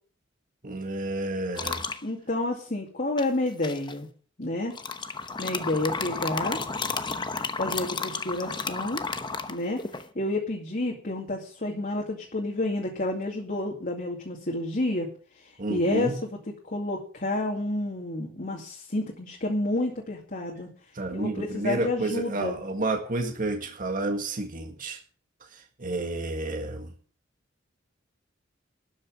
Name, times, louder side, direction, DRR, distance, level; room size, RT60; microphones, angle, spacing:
voice 1, 0.6-1.8 15.6-16.2 20.9-25.0 25.5-26.9, right 2 dB, 45° right, 3 dB, 1.8 m, -30 dB
sound 1, 1.6-2.0 3.2-3.9 4.7-10.1, left 4 dB, 25° left, 1.0 m, -32 dB
voice 2, 2.0-4.1 4.4-4.7 5.4-6.6 7.6-9.0 9.5-9.8 10.1-15.1 15.4-16.4 16.7-20.7 21.1-22.6, left 2 dB, 45° left, 0 dB, 2.4 m, -30 dB
12.5 x 6.5 x 8.8 m, 0.43 s
head